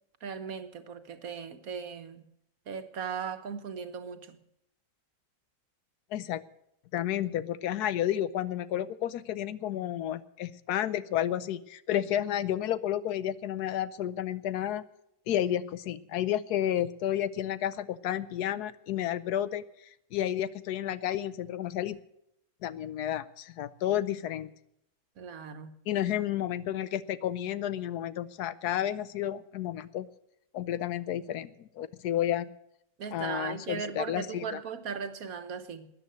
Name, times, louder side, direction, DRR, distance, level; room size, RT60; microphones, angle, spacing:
voice 1, 0.2-2.2 2.7-4.4 25.2-25.7 33.0-35.9, right 6 dB, 65° right, 9 dB, 1.5 m, -38 dB
voice 2, 6.1-6.4 6.9-14.8 15.3-19.6 20.1-22.0 22.6-24.5 25.9-30.1 30.5-32.5 33.1-34.6, left 11 dB, 90° left, 16 dB, 1.2 m, -31 dB
13.5 x 9.5 x 7.6 m, 0.77 s
omnidirectional pair, 1.6 m